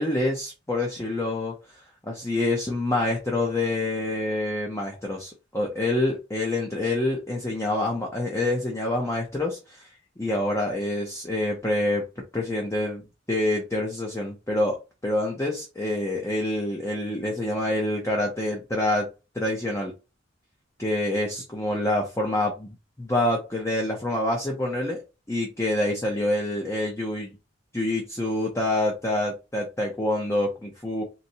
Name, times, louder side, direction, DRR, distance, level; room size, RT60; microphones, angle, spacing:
voice 1, 0.0-9.9 10.2-19.1 19.3-19.9 20.8-25.0 25.3-27.4 27.7-31.0, left 1 dB, 15° left, -1 dB, 0.6 m, -27 dB
4.0 x 2.1 x 2.7 m, 0.28 s
head